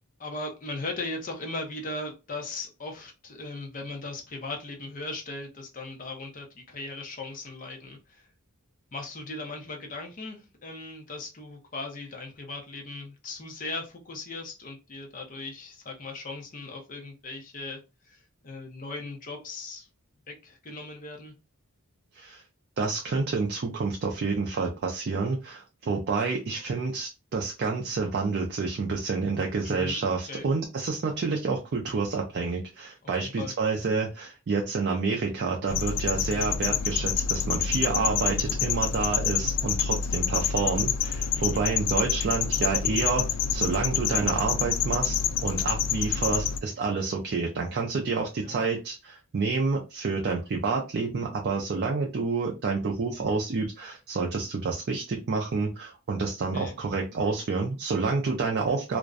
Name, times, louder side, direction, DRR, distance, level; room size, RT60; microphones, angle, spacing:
voice 1, 0.2-8.3 8.9-17.8 18.0-19.9 20.3-21.3 29.6-30.0 30.3-30.5 33.2-33.5 41.3-41.7 48.4-48.6 56.5-56.8, left 2 dB, 40° left, 0.6 m, -38 dB
voice 2, 22.8-59.0, right 4 dB, 45° right, 0.4 m, -29 dB
sound 1, 35.7-46.6, left 8 dB, 90° left, 0.3 m, -27 dB
2.5 x 2.1 x 2.4 m
head